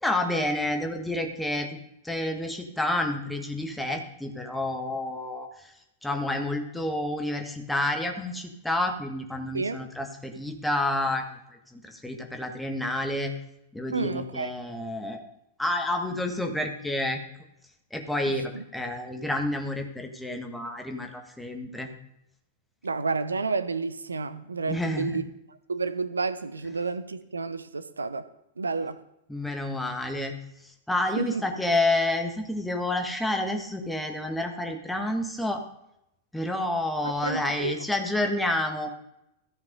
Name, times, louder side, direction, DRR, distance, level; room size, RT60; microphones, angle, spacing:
voice 1, 0.0-1.8 2.0-5.7 6.0-11.2 11.7-13.3 13.7-15.3 15.6-17.2 17.9-21.9 24.7-25.2 29.3-30.3 30.9-35.6 36.3-38.9, left 1 dB, 5° left, 3 dB, 1.5 m, -29 dB
voice 2, 13.9-14.5 18.3-18.6 22.8-25.2 25.7-28.3 28.6-29.0 31.2-31.4 37.0-37.8, right 4 dB, 75° right, 12 dB, 0.6 m, -30 dB
14.0 x 5.8 x 5.3 m, 0.83 s
figure-of-eight pair, 95°, 0 cm